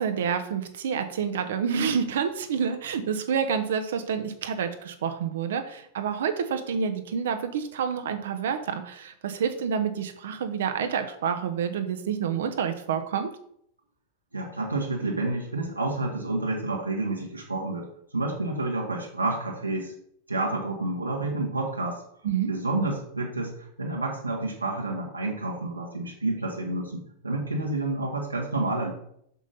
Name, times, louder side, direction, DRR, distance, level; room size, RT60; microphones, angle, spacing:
voice 1, 0.0-13.3 22.2-22.5, right 7 dB, 60° right, 8 dB, 0.7 m, -28 dB
voice 2, 14.3-19.9 20.3-22.0 22.5-28.9, right 2 dB, 85° right, -2 dB, 1.3 m, -29 dB
6.1 x 5.4 x 4.1 m, 0.70 s
figure-of-eight pair, 90°, 0 cm